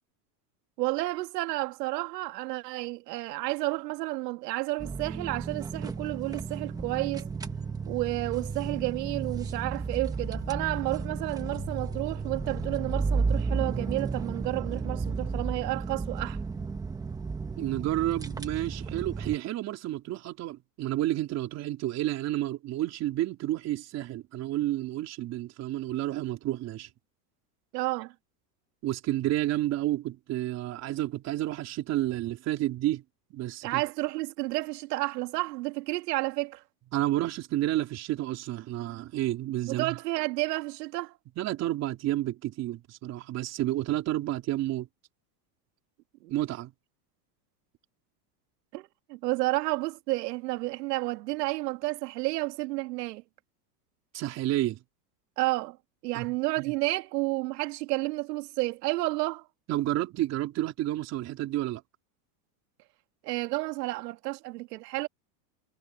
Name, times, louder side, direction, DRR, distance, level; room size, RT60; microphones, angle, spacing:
voice 1, 0.8-7.3 7.9-16.4 27.7-28.1 33.6-36.6 39.6-41.1 46.2-46.3 48.7-53.2 55.4-55.8 56.0-59.5 63.2-65.1, right 20 dB, 75° right, 2.0 m, -31 dB
sound 1, 4.8-19.4, right 4 dB, 10° right, 1.1 m, -33 dB
sound 2, 5.7-13.9, left 8 dB, 20° left, 6.3 m, -47 dB
voice 2, 17.6-26.9 28.8-33.0 33.3-33.8 36.9-40.0 41.4-44.9 46.3-46.7 54.1-54.8 56.1-56.3 56.6-56.7 59.7-61.8, right 14 dB, 30° right, 3.8 m, -30 dB
supercardioid pair, 165°, 48 cm